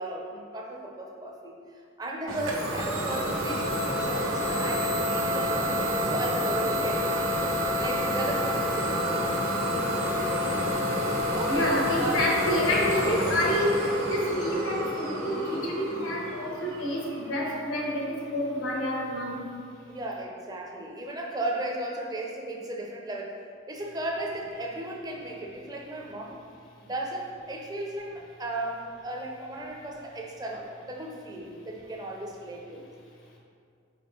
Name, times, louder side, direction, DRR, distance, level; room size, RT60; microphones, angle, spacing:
voice 1, 0.0-7.5 7.8-9.3 10.4-11.0 11.3-12.3 19.9-26.4 26.8-32.9, right 1 dB, 20° right, 0 dB, 0.5 m, -36 dB
Idling / Domestic sounds home sounds, 2.3-17.8, equal, 85° right, 1.0 m, -28 dB
voice 2, 11.5-19.5, left 1 dB, 80° left, -2 dB, 1.2 m, -28 dB
5.1 x 4.5 x 4.5 m, 2.3 s
head